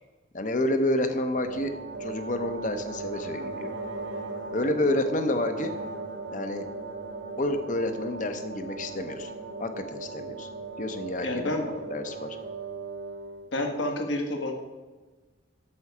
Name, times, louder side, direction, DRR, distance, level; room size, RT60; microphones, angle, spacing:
voice 1, 0.3-1.7 2.0-3.7 4.5-5.7 6.3-6.6 7.4-9.3 9.6-10.5 10.8-12.4, left 1 dB, 40° left, 8 dB, 0.8 m, -29 dB
sound 1, 1.3-13.5, right 4 dB, 75° right, 0.9 m, -38 dB
voice 2, 11.2-11.7 13.5-14.5, left 1 dB, 70° left, 3 dB, 1.5 m, -29 dB
8.8 x 7.0 x 4.9 m, 1.3 s
head